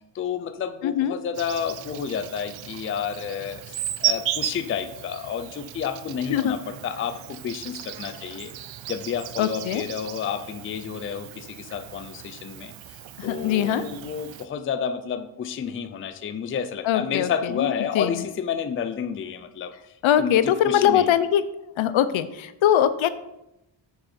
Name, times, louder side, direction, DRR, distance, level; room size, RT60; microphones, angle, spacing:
voice 1, 0.1-8.5 8.9-21.1, left 7 dB, 30° left, 9 dB, 0.4 m, -30 dB
voice 2, 0.8-1.2 6.3-6.6 9.4-9.8 13.2-13.9 16.8-18.1 20.0-21.4 21.8-23.1, left 10 dB, 80° left, 13 dB, 0.7 m, -22 dB
Insect, 1.3-14.5, right 11 dB, 75° right, 0.6 m, -35 dB
7.2 x 6.4 x 4.3 m, 0.88 s
wide cardioid pair, 175°, 46 cm